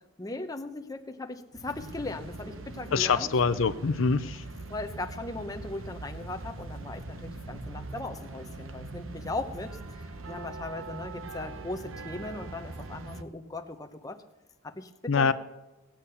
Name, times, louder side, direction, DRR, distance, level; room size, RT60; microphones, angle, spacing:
voice 1, 0.2-3.3 4.7-14.2 14.6-15.3, left 2 dB, 20° left, 5 dB, 0.9 m, -38 dB
sound 1, 1.5-13.2, right 2 dB, 85° right, 1.2 m, -42 dB
voice 2, 2.9-4.4 15.1-15.3, left 5 dB, 75° left, 12 dB, 0.6 m, -25 dB
18.0 x 8.7 x 6.9 m, 1.1 s
head